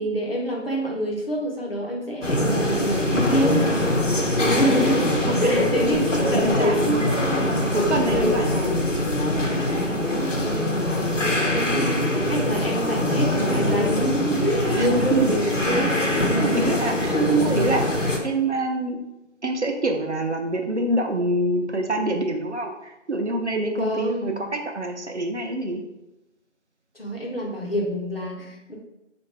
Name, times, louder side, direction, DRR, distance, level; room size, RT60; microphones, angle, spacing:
voice 1, 0.0-3.6 4.3-8.6 9.9-15.9 17.1-17.4 23.7-24.4 26.9-28.7, right 1 dB, 50° left, -2 dB, 0.9 m, -26 dB
sound 1, 2.2-18.2, left 1 dB, 85° left, 1.0 m, -23 dB
voice 2, 5.2-7.1 7.7-8.7 14.6-15.8 16.4-17.8 18.2-19.0 19.4-25.8, right 1 dB, 65° right, 3 dB, 0.6 m, -26 dB
4.4 x 2.5 x 3.2 m, 0.93 s
figure-of-eight pair, 170°, 37 cm